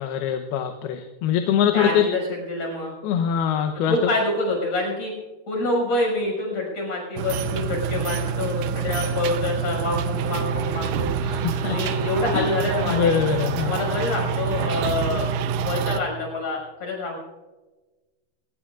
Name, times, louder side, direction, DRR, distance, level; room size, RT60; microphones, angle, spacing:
voice 1, 0.0-2.1 3.0-4.0 11.2-11.8 12.3-12.5 12.9-13.7, left 8 dB, 80° left, 6 dB, 2.8 m, -23 dB
voice 2, 1.7-2.2 2.5-2.9 3.9-5.1 5.5-11.1 11.6-13.1 13.7-17.2, left 2 dB, 45° left, 0 dB, 7.0 m, -26 dB
sound 1, 7.2-16.0, right 6 dB, 75° right, 2.1 m, -26 dB
25.0 x 21.0 x 2.5 m, 1.2 s
omnidirectional pair, 4.5 m